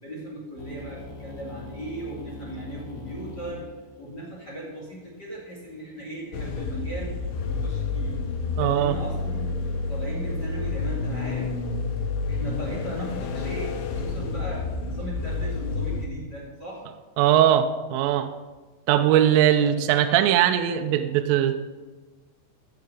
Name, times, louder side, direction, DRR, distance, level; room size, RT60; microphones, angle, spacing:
voice 1, 0.0-3.7 4.0-7.2 7.4-8.2 8.6-9.5 9.9-11.5 12.3-16.8 19.6-19.8, right 1 dB, 35° left, -4 dB, 1.7 m, -37 dB
sound 1, 0.6-6.5, left 2 dB, 65° left, 5.6 m, -44 dB
sound 2, 6.3-16.1, left 4 dB, 90° left, 2.2 m, -29 dB
voice 2, 8.6-9.0 17.2-18.3 18.9-21.5, right 11 dB, 85° right, 6 dB, 3.3 m, -20 dB
15.5 x 6.9 x 6.8 m, 1.3 s
omnidirectional pair, 5.8 m